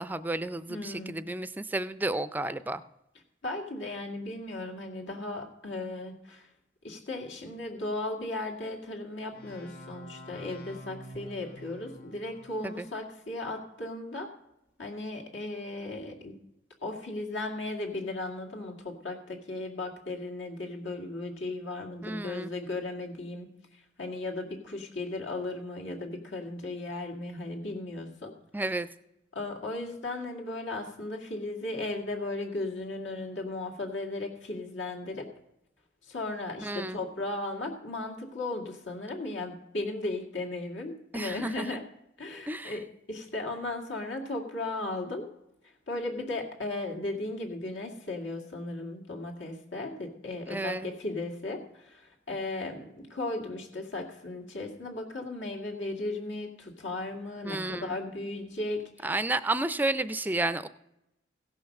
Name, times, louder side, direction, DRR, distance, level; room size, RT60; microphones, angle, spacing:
voice 1, 0.0-2.8 12.6-12.9 22.0-22.5 28.5-28.9 36.6-37.0 41.1-41.8 42.5-42.8 50.5-50.9 57.4-58.0 59.0-60.7, right 2 dB, 10° right, 14 dB, 0.4 m, -31 dB
voice 2, 0.7-1.3 3.4-6.5 6.8-14.3 14.8-16.4 16.8-28.3 29.3-35.3 36.0-41.8 42.2-45.3 45.9-59.1, left 2 dB, 80° left, 1 dB, 2.2 m, -36 dB
sound 1, 9.3-12.9, equal, 55° left, 1.6 m, -48 dB
16.5 x 5.7 x 6.5 m, 0.86 s
head